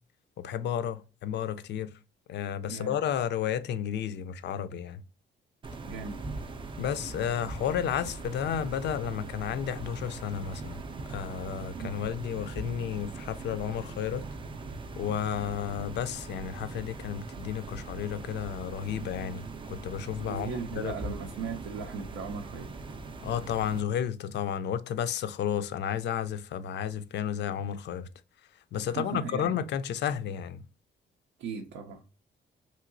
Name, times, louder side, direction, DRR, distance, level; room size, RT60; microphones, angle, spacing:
voice 1, 0.4-2.0 2.3-5.0 6.8-10.8 11.1-14.3 15.0-21.2 23.2-28.1 28.7-30.7, left 9 dB, 60° left, 0.4 m, -32 dB
sound 1, 5.6-23.8, right 3 dB, 25° right, 0.4 m, -41 dB
voice 2, 5.9-6.2 11.7-12.0 20.3-22.7 28.8-29.5 31.4-32.0, right 5 dB, 85° right, 0.5 m, -37 dB
3.0 x 2.7 x 2.5 m
cardioid pair, 90°, 20 cm